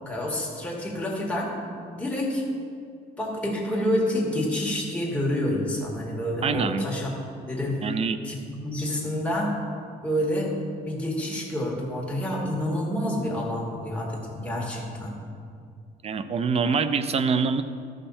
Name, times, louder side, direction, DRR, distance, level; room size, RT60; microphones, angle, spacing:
voice 1, 0.0-1.5 1.9-2.4 3.2-7.1 7.5-7.8 8.2-9.5 10.0-10.5 10.8-15.1, left 1 dB, 5° left, -3 dB, 2.2 m, -28 dB
voice 2, 6.4-6.9 7.8-8.2 16.0-17.6, right 5 dB, 35° right, 11 dB, 0.5 m, -25 dB
13.5 x 5.7 x 4.3 m, 2.3 s
cardioid pair, 110°, 17 cm